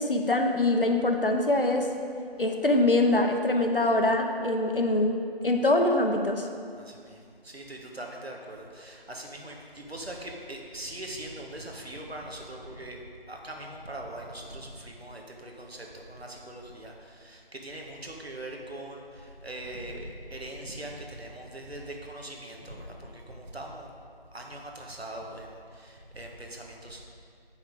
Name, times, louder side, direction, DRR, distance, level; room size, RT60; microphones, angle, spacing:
voice 1, 0.0-1.9 2.4-5.1 5.4-6.5, left 2 dB, 65° left, 4 dB, 0.9 m, -24 dB
voice 2, 6.7-23.9 24.3-27.0, right 1 dB, 80° right, 1 dB, 1.4 m, -41 dB
7.7 x 5.8 x 4.7 m, 2.2 s
figure-of-eight pair, 175°, 30 cm